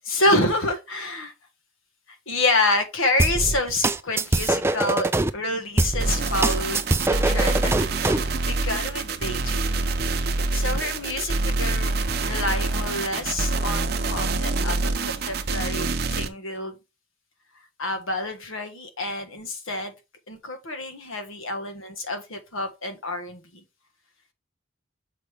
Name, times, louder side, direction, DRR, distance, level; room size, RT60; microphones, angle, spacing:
voice 1, 0.0-1.3 2.3-6.8 7.1-7.7 8.4-9.9 10.5-11.9 12.2-16.8 17.8-19.9 20.3-23.4, left 2 dB, 85° left, 1.5 m, -27 dB
sound 1, 3.2-5.3 5.8-8.3, right 2 dB, 10° right, 0.3 m, -23 dB
sound 2, 6.0-16.3, right 3 dB, 50° right, 0.8 m, -26 dB
6.7 x 4.9 x 3.5 m
head